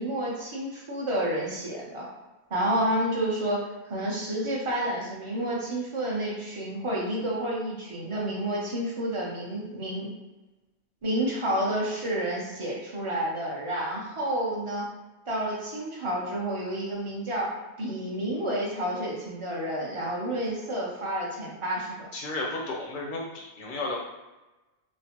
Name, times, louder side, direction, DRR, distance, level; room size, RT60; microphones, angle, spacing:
voice 1, 0.0-2.1 2.5-10.1 11.0-14.9 15.3-22.1, right 1 dB, 35° right, -4 dB, 0.6 m, -30 dB
voice 2, 22.1-24.0, left 2 dB, 60° left, -1 dB, 0.6 m, -33 dB
3.1 x 2.1 x 2.9 m, 1.1 s
omnidirectional pair, 1.1 m